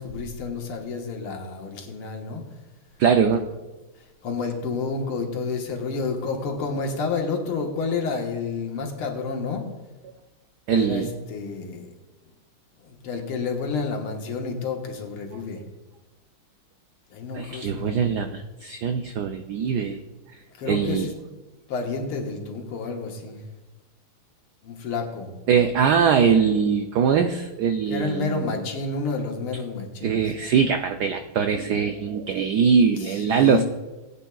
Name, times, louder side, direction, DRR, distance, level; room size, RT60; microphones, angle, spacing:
voice 1, 0.0-2.4 4.2-9.6 10.7-11.9 12.8-15.6 17.1-18.2 20.6-21.1 21.7-23.4 24.6-25.3 27.9-30.2 33.0-33.6, left 4 dB, 80° left, 2 dB, 2.2 m, -30 dB
voice 2, 3.0-3.4 10.7-11.1 15.3-15.4 17.3-20.0 20.7-21.1 25.5-28.6 30.0-33.6, right 6 dB, 80° right, 6 dB, 0.9 m, -22 dB
18.5 x 9.0 x 2.3 m, 1.1 s
omnidirectional pair, 2.4 m